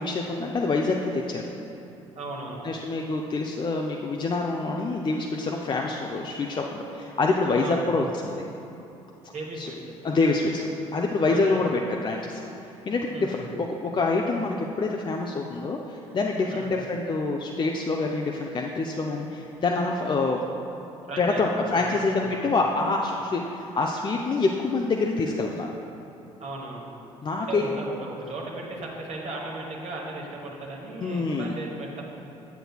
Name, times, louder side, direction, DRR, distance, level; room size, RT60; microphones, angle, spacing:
voice 1, 0.0-1.5 2.6-8.4 9.6-9.7 10.0-12.4 12.8-20.5 21.2-25.7 27.2-27.7 31.0-31.5, left 3 dB, 30° left, 0 dB, 0.5 m, -26 dB
voice 2, 2.1-2.7 7.6-7.9 9.3-9.9 11.3-11.6 13.1-13.5 16.5-16.7 21.1-22.5 26.4-26.9 27.4-32.0, right 2 dB, 45° right, -2 dB, 1.2 m, -37 dB
8.0 x 7.7 x 2.3 m, 2.8 s
hypercardioid pair, 55°, 16 cm